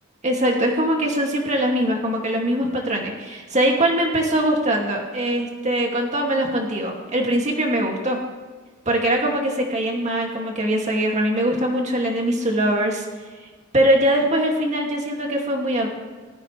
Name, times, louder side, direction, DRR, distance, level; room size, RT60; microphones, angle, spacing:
voice 1, 0.2-8.2 8.9-13.0 13.7-15.9, right 1 dB, 35° right, 0 dB, 2.4 m, -22 dB
18.0 x 13.5 x 3.4 m, 1.4 s
head